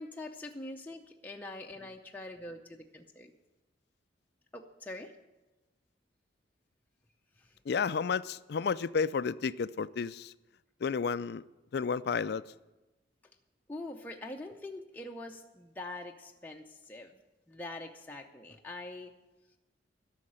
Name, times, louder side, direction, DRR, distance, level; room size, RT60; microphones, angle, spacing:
voice 1, 0.0-3.3 4.5-5.1 13.7-17.1 17.5-19.1, left 2 dB, 10° left, 0.6 m, -44 dB
voice 2, 7.7-10.3 10.8-11.4 11.7-12.4, left 5 dB, 60° left, 0.4 m, -31 dB
12.5 x 6.5 x 9.9 m
head